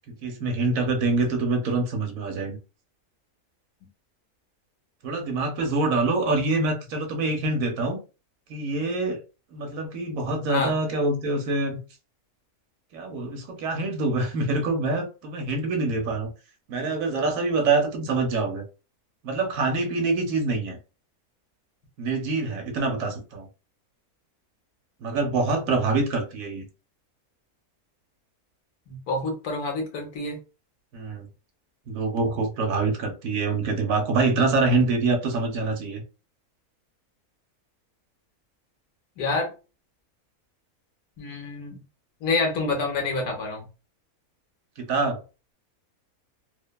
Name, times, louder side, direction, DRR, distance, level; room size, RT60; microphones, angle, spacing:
voice 1, 0.2-2.6 5.0-8.0 8.5-9.2 9.5-11.8 12.9-16.3 16.7-18.6 19.2-20.8 22.0-23.5 25.0-26.7 30.9-31.3 31.9-36.0 44.9-45.2, right 3 dB, 70° right, 1.1 m, -25 dB
voice 2, 28.9-30.4 39.2-39.5 41.2-41.8 42.2-43.7, left 3 dB, 85° left, 1.4 m, -27 dB
3.0 x 2.1 x 2.2 m
omnidirectional pair, 1.6 m